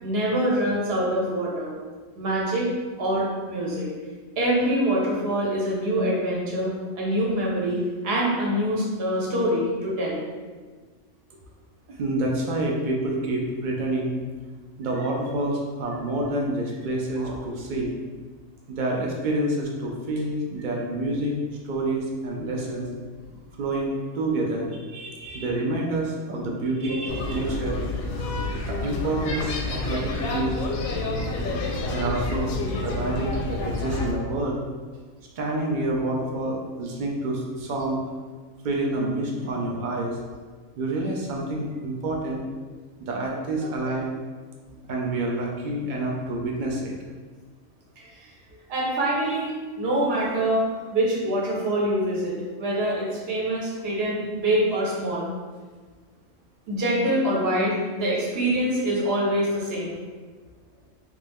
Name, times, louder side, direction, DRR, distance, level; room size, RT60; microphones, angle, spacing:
voice 1, 0.0-1.7 2.1-2.7 3.0-3.9 4.4-10.2 17.1-17.4 24.9-25.5 26.8-27.4 43.6-43.9 48.0-48.3 48.7-55.3 56.7-60.0, right 1 dB, 50° right, -4 dB, 1.0 m, -25 dB
voice 2, 12.0-14.1 14.8-17.9 18.7-21.4 21.6-22.8 23.6-24.7 25.3-27.8 28.7-30.5 31.9-32.5 32.8-34.6 35.4-38.0 38.6-40.2 40.8-42.4 43.0-44.1 44.9-46.9, right 2 dB, 70° right, -1 dB, 0.4 m, -28 dB
sound 1, 27.1-34.1, left 2 dB, 85° left, 1.0 m, -29 dB
3.2 x 2.5 x 3.5 m, 1.4 s
omnidirectional pair, 1.4 m